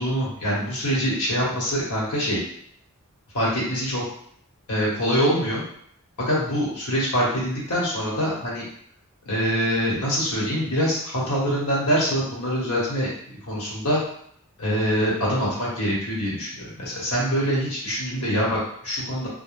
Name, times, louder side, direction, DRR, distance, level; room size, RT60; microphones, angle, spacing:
voice 1, 0.0-2.4 3.3-4.0 4.7-5.6 6.2-8.7 9.3-13.1 13.5-14.0 14.6-19.3, equal, 85° left, -5 dB, 1.1 m, -24 dB
2.4 x 2.1 x 3.1 m, 0.66 s
head